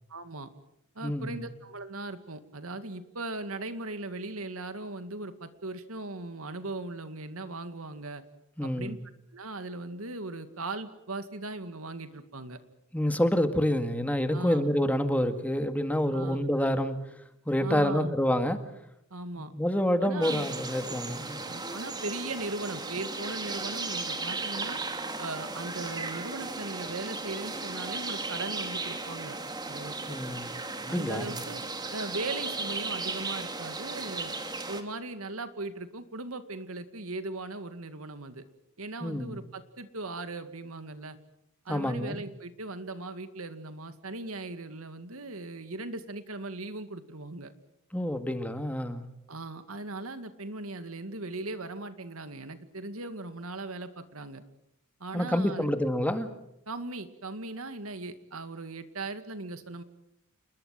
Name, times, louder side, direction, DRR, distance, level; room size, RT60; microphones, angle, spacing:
voice 1, 0.1-0.5 1.0-8.2 8.6-9.0 9.3-12.6 14.3-14.7 16.1-16.5 17.6-18.2 19.1-19.5 20.0-20.5 21.4-24.8 25.2-29.4 29.7-30.2 30.9-31.6 31.9-34.3 34.7-38.4 38.8-41.2 41.7-47.5 49.3-54.4 55.0-55.7 56.7-59.8, right 2 dB, 75° right, 10 dB, 2.2 m, -38 dB
voice 2, 1.0-1.4 8.6-9.0 12.9-17.0 17.5-18.6 19.5-21.4 30.1-30.5 30.8-31.4 39.0-39.4 41.7-42.2 47.9-49.0 55.1-56.3, equal, 5° left, 8 dB, 1.9 m, -28 dB
sound 1, 20.2-34.8, right 3 dB, 20° right, 2.4 m, -36 dB
29.0 x 21.0 x 7.7 m, 0.81 s
head